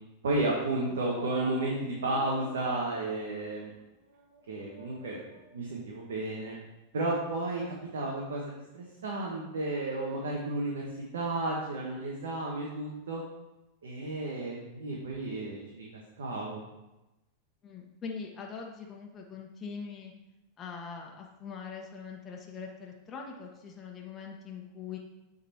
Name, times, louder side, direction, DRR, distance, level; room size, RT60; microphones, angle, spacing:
voice 1, 0.2-3.7 4.5-5.2 5.5-6.6 6.9-10.9 11.1-13.2 13.8-15.9 16.2-16.6, right 2 dB, 80° right, -3 dB, 1.3 m, -32 dB
sound 1, 1.1-1.6 2.0-3.2 3.6-3.7 4.1-4.4 4.7-5.5, right 3 dB, 60° right, 1.6 m, -50 dB
voice 2, 17.6-20.1 20.6-25.0, left 5 dB, 30° left, 0 dB, 1.1 m, -42 dB
8.5 x 4.0 x 4.3 m, 0.99 s
hypercardioid pair, 105°, 0 cm